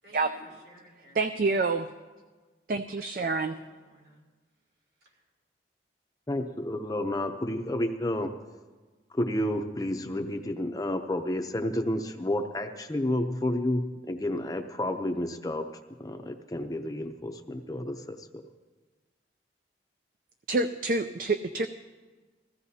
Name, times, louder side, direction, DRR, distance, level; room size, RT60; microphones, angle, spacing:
voice 1, 0.0-1.2 1.5-1.8 3.3-4.2 5.0-5.2, equal, 70° right, -3 dB, 5.4 m, -55 dB
voice 2, 1.1-1.9 2.7-3.6 20.5-21.7, right 3 dB, 50° right, 9 dB, 0.4 m, -27 dB
voice 3, 6.3-8.3 9.1-15.7 16.0-18.4, left 1 dB, 20° left, 5 dB, 0.6 m, -30 dB
21.5 x 15.5 x 2.8 m, 1.3 s
head